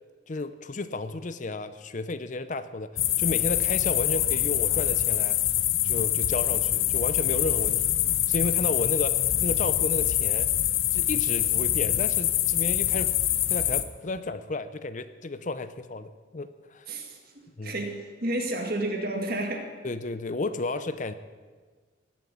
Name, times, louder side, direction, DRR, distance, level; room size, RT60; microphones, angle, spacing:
voice 1, 0.3-5.4 5.8-7.8 8.3-10.5 10.9-13.2 13.5-16.9 17.6-17.7 19.8-21.1, left 2 dB, 35° left, 12 dB, 0.6 m, -33 dB
sound 1, 3.0-13.8, left 12 dB, 80° left, 0.9 m, -25 dB
voice 2, 16.9-17.2 17.6-19.7, right 1 dB, 45° right, 3 dB, 2.1 m, -31 dB
19.0 x 7.5 x 8.6 m, 1.5 s
head